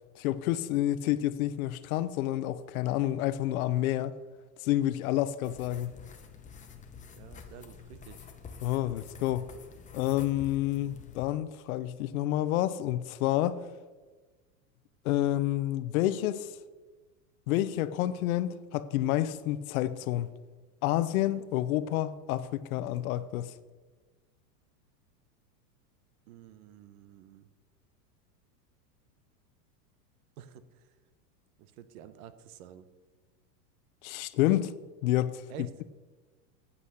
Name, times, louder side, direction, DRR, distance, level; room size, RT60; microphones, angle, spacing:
voice 1, 0.2-4.1 4.6-5.9 8.6-9.5 9.9-13.6 15.0-16.5 17.5-20.3 20.8-23.5 34.0-34.7 35.0-35.4, left 14 dB, 60° left, 0.7 m, -29 dB
sound 1, 5.4-11.3, left 6 dB, 15° left, 0.8 m, -48 dB
voice 2, 7.1-8.3 26.3-27.5 30.4-30.9 31.6-32.9 35.5-35.7, right 9 dB, 60° right, 1.0 m, -49 dB
8.4 x 8.3 x 6.3 m
supercardioid pair, 130°, 49 cm